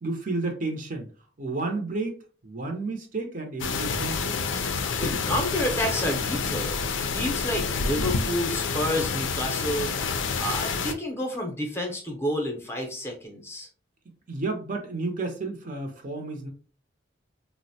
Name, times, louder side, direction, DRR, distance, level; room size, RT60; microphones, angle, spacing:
voice 1, 0.0-1.1 1.4-2.2 2.4-4.5 14.3-16.5, right 3 dB, 45° right, 3 dB, 0.6 m, -31 dB
sound 1, 3.6-10.9, left 5 dB, 80° left, 0.4 m, -28 dB
voice 2, 5.0-9.9 10.4-13.7, equal, 15° left, 2 dB, 0.7 m, -30 dB
3.8 x 2.1 x 2.7 m, 0.38 s
head